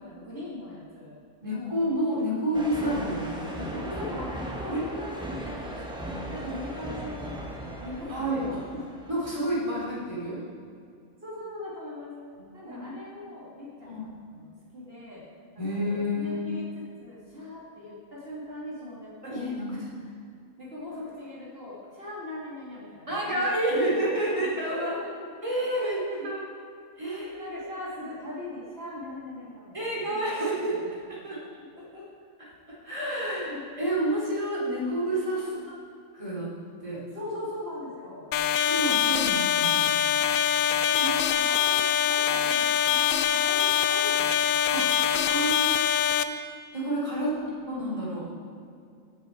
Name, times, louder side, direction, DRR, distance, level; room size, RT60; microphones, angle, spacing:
voice 1, 0.0-1.8 3.5-5.7 6.3-7.4 7.8-8.8 11.2-12.2 12.5-14.4 14.7-15.2 15.5-19.8 20.6-25.3 25.7-26.3 27.0-30.4 30.7-30.9 31.8-32.1 33.2-33.6 35.3-35.7 37.1-38.3 40.9-44.8 45.1-45.4 47.1-47.6, left 1 dB, 45° right, -7 dB, 2.7 m, -40 dB
voice 2, 1.4-3.7 4.7-4.8 6.1-6.3 8.1-8.4 9.1-10.4 12.6-12.8 13.8-14.0 15.6-16.4 19.2-19.7 23.1-24.9 25.4-26.4 27.0-27.5 29.7-30.9 31.2-31.4 32.8-33.5 33.8-35.6 36.1-36.5 36.8-37.0 38.5-39.9 41.0-41.1 44.7-45.0 45.2-45.7 46.2-46.4 46.7-47.3 47.7-48.3, right 1 dB, 25° right, -6 dB, 3.3 m, -29 dB
sound 1, 2.5-9.6, right 1 dB, 5° right, 1.3 m, -37 dB
sound 2, 38.3-46.2, left 9 dB, 80° left, 1.0 m, -24 dB
16.5 x 6.9 x 4.5 m, 2.4 s
omnidirectional pair, 1.4 m